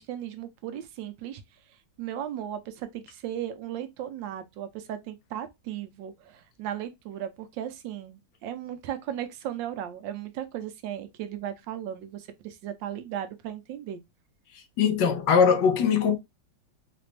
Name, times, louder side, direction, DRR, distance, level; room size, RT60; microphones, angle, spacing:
voice 1, 0.0-1.4 2.0-14.0, right 10 dB, 90° right, 1.4 m, -36 dB
voice 2, 14.8-16.2, left 6 dB, 80° left, 1.4 m, -21 dB
4.0 x 2.5 x 3.2 m
omnidirectional pair, 1.9 m